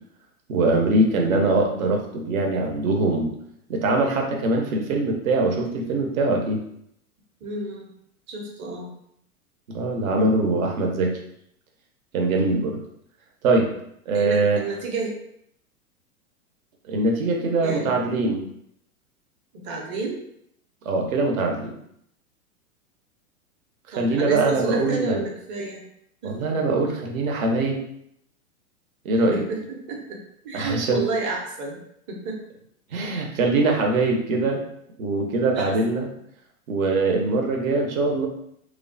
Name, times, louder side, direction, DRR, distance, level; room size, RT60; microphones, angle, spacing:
voice 1, 0.5-3.3 3.7-6.6 9.7-11.2 12.1-12.8 13.4-13.7 14.1-14.6 16.9-18.5 20.8-21.7 24.0-25.2 26.2-27.8 29.0-29.4 30.5-31.0 32.9-34.6 35.0-36.1 36.7-38.3, right 2 dB, 65° right, 2 dB, 0.8 m, -22 dB
voice 2, 7.4-7.9 8.3-8.9 14.1-15.2 17.6-18.0 19.5-20.2 23.9-25.8 26.2-26.6 29.3-31.8 32.1-32.4 35.6-35.7, right 3 dB, 25° right, 0 dB, 0.6 m, -31 dB
3.1 x 2.1 x 2.6 m, 0.73 s
hypercardioid pair, 105°, 44 cm